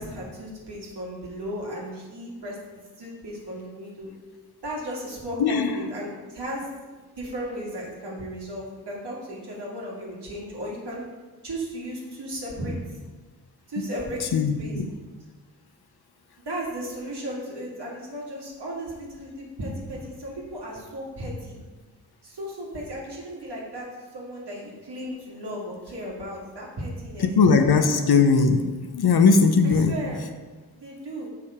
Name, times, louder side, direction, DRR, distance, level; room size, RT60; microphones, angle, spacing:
voice 1, 0.0-2.6 3.0-4.1 4.6-6.7 7.2-11.1 11.4-12.8 13.7-14.8 16.5-21.6 22.2-27.3 27.7-28.0 29.6-30.2 30.7-31.3, equal, 85° right, -5 dB, 2.1 m, -35 dB
voice 2, 14.3-14.9 27.4-28.6 28.9-29.9, left 4 dB, 75° left, 6 dB, 0.7 m, -19 dB
6.3 x 5.8 x 4.9 m, 1.3 s
wide cardioid pair, 80°, 39 cm